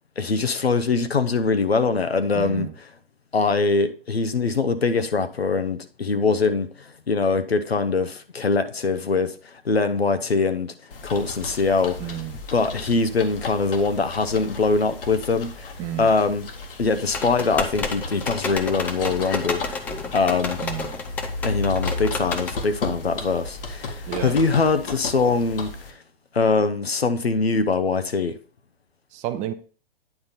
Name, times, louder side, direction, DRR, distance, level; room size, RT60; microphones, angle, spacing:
voice 1, 0.2-2.7 3.3-10.7 11.0-12.1 12.5-15.7 16.0-16.5 16.8-19.8 20.1-20.6 21.4-26.0 26.3-28.3, left 4 dB, 85° left, 1.0 m, -23 dB
voice 2, 2.4-2.7 12.0-12.4 15.8-16.1 20.6-20.9 24.1-24.4 29.1-29.5, right 12 dB, 25° right, 0.6 m, -31 dB
sound 1, 10.9-25.9, left 3 dB, 65° left, 1.6 m, -34 dB
sound 2, 17.1-22.6, left 4 dB, 5° left, 0.3 m, -31 dB
9.5 x 4.2 x 5.1 m
figure-of-eight pair, 115°, 30 cm